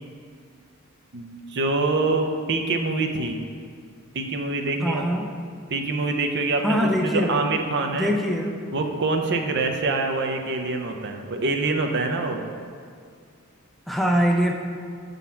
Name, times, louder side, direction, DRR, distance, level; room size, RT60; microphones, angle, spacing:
voice 1, 1.1-3.4 4.1-5.0 5.7-8.2 8.7-12.4, right 3 dB, 55° right, 4 dB, 0.6 m, -25 dB
voice 2, 4.8-5.3 6.6-7.4 7.9-8.5 13.9-14.5, equal, ahead, 0 dB, 0.5 m, -22 dB
7.4 x 4.0 x 5.6 m, 2.2 s
head